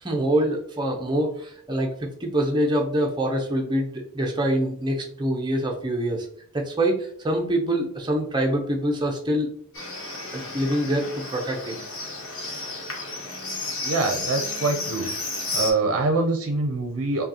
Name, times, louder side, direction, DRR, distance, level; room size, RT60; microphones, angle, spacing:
voice 1, 0.0-1.9 2.2-6.3 6.5-9.5 10.3-11.8, right 1 dB, 20° right, 1 dB, 0.6 m, -25 dB
Livestock farm animals working animals, 9.7-15.7, left 2 dB, 60° left, 1.1 m, -32 dB
voice 2, 13.8-15.1 15.5-17.2, right 3 dB, 70° right, 3 dB, 0.5 m, -24 dB
5.2 x 2.3 x 2.8 m, 0.63 s
head